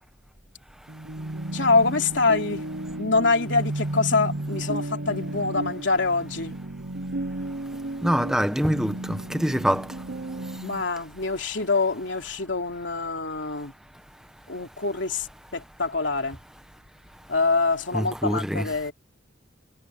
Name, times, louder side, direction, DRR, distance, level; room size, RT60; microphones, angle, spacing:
sound 1, 0.9-10.8, right 1 dB, 75° right, 1.0 m, -33 dB
voice 1, 1.5-2.6 3.0-6.5 10.6-13.7 14.5-15.3 15.5-16.4 17.3-18.9, left 3 dB, 70° left, 3.2 m, -25 dB
voice 2, 8.0-9.9 17.9-18.7, equal, 5° right, 1.1 m, -24 dB
head